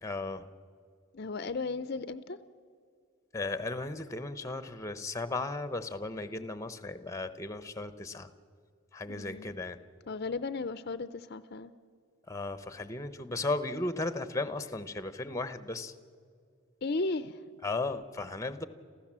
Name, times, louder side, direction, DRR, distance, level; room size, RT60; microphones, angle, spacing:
voice 1, 0.0-0.5 3.3-8.3 8.9-9.8 12.3-15.9 17.6-18.7, left 2 dB, 15° left, 12 dB, 0.8 m, -35 dB
voice 2, 1.1-2.4 9.1-9.6 10.1-11.7 16.8-17.4, left 3 dB, 45° left, 13 dB, 0.5 m, -35 dB
28.0 x 15.5 x 7.4 m, 2.2 s
head